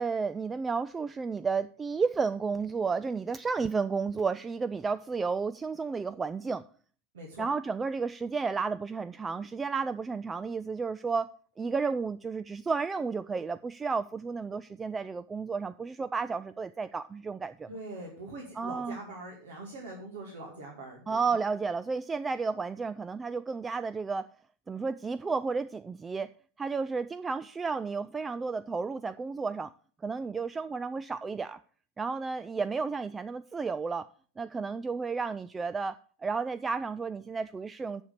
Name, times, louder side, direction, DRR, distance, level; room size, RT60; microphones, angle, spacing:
voice 1, 0.0-6.7 7.4-11.3 11.6-17.7 18.6-19.0 21.1-24.3 24.7-26.3 26.6-29.7 30.0-31.6 32.0-34.1 34.4-38.0, right 4 dB, 15° right, 0.3 m, -32 dB
voice 2, 7.1-7.5 17.7-21.2, right 2 dB, 60° right, 2.3 m, -43 dB
7.2 x 6.2 x 6.7 m
figure-of-eight pair, 90°, 0 cm